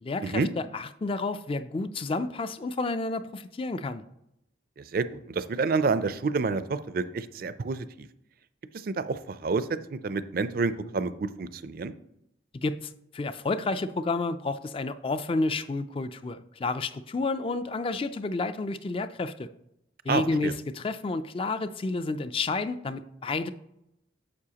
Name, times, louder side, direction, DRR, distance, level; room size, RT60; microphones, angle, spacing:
voice 1, 0.0-4.0 12.5-19.5 20.0-23.5, left 3 dB, 30° left, 12 dB, 0.3 m, -30 dB
voice 2, 4.8-8.1 8.7-11.9 20.1-20.5, right 4 dB, 50° right, 13 dB, 0.4 m, -29 dB
9.5 x 6.8 x 2.9 m, 0.82 s
head